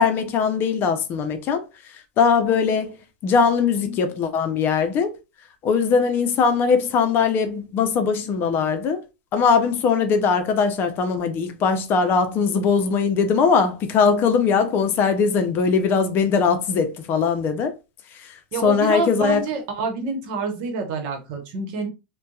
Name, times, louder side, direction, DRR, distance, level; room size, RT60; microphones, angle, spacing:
voice 1, 0.0-1.6 2.2-3.0 3.2-5.2 5.6-9.0 9.3-17.7 18.2-18.3 18.6-19.4, left 5 dB, 40° left, 0.6 m, -20 dB
voice 2, 18.5-21.9, right 4 dB, 60° right, 1.0 m, -27 dB
2.7 x 2.2 x 2.3 m
supercardioid pair, 115°, 5 cm